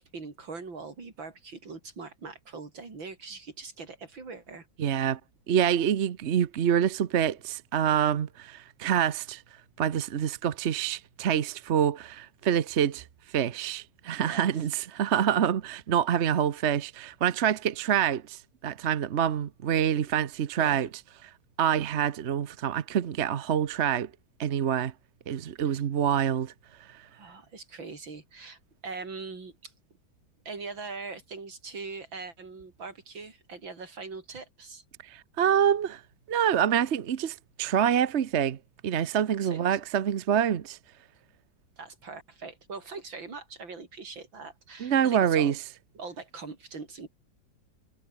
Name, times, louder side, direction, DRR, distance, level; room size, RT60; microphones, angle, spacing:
voice 1, 0.0-4.7 14.2-14.5 20.6-20.9 25.6-25.7 27.1-29.7 30.4-34.8 39.4-39.8 41.8-45.6 45.9-47.1, right 4 dB, 90° right, 4.7 m, -42 dB
voice 2, 4.8-5.2 5.5-9.4 9.8-20.9 21.2-21.3 21.6-24.1 24.4-24.9 25.3-26.5 26.9-27.1 35.0-36.0 36.3-38.6 38.8-40.8 44.8-45.6, right 9 dB, 50° right, 0.9 m, -26 dB
omnidirectional pair, 2.0 m